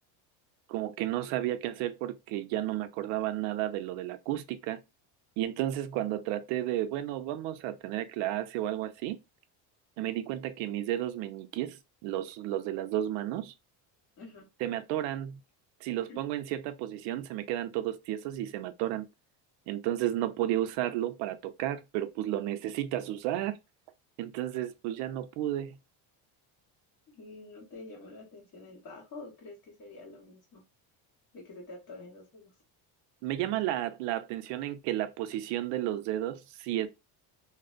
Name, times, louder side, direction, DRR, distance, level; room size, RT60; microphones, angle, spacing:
voice 1, 0.7-4.8 5.4-9.2 10.0-11.8 12.0-13.5 14.6-15.4 15.8-19.1 19.7-23.6 24.2-25.8 33.2-36.9, right 13 dB, 75° right, 0.5 m, -32 dB
voice 2, 27.1-30.6 31.3-32.5, left 2 dB, 45° left, 1.2 m, -47 dB
2.5 x 2.1 x 2.4 m
cardioid pair, 170°, 45 cm